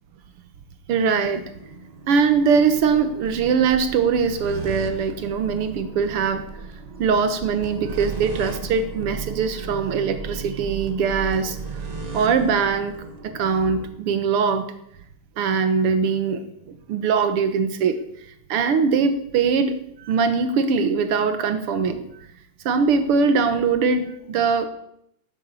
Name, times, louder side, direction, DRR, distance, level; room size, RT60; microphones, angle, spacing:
voice 1, 0.9-1.5 2.1-6.5 7.0-11.6 12.1-12.9 13.2-14.7 15.4-18.0 18.5-22.1 22.7-24.7, right 5 dB, 85° right, 10 dB, 2.1 m, -21 dB
sound 1, 1.2-13.9, right 4 dB, 25° right, 0.9 m, -36 dB
12.5 x 9.2 x 8.3 m, 0.74 s
omnidirectional pair, 2.4 m